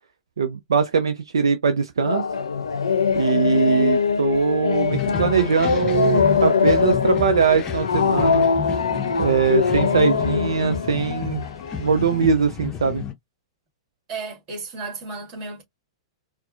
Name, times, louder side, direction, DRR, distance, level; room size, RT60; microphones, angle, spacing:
voice 1, 0.4-2.3 3.1-8.4 9.2-11.4 11.8-13.0, right 6 dB, 70° right, 0.5 m, -21 dB
sound 1, 2.0-12.3, left 5 dB, 70° left, 0.6 m, -22 dB
sound 2, 4.9-13.1, left 8 dB, 25° left, 0.6 m, -31 dB
voice 2, 14.1-15.6, right 4 dB, 35° right, 1.9 m, -33 dB
4.1 x 2.1 x 2.5 m
figure-of-eight pair, 105°, 3 cm